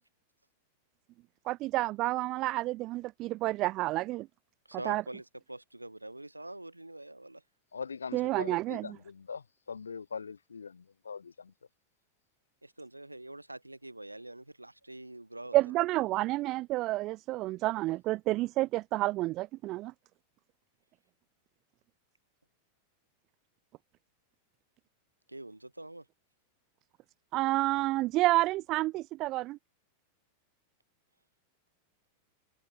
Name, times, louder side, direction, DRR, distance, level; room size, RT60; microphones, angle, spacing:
voice 1, 1.5-4.3 4.9-5.0 8.1-9.0 15.5-19.9 27.3-29.6, right 18 dB, 40° right, 0.3 m, -29 dB
voice 2, 4.7-7.4 12.6-15.6 25.3-26.0, right 1 dB, 85° right, 4.9 m, -45 dB
voice 3, 7.7-11.5, left 5 dB, 75° left, 2.2 m, -42 dB
figure-of-eight pair, 90°, 0 cm